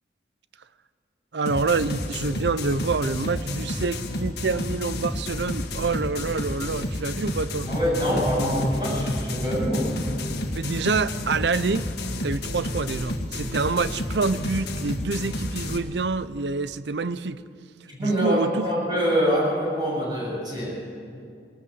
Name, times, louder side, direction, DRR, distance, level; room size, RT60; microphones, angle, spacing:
voice 1, 1.3-7.7 10.5-11.9 12.2-17.4 18.0-18.7, right 4 dB, 75° right, 14 dB, 0.6 m, -27 dB
sound 1, 1.5-15.8, left 1 dB, 60° left, 2.0 m, -31 dB
voice 2, 7.7-9.9 17.9-20.8, equal, 25° right, -4 dB, 7.5 m, -24 dB
20.0 x 19.5 x 7.7 m, 2.4 s
head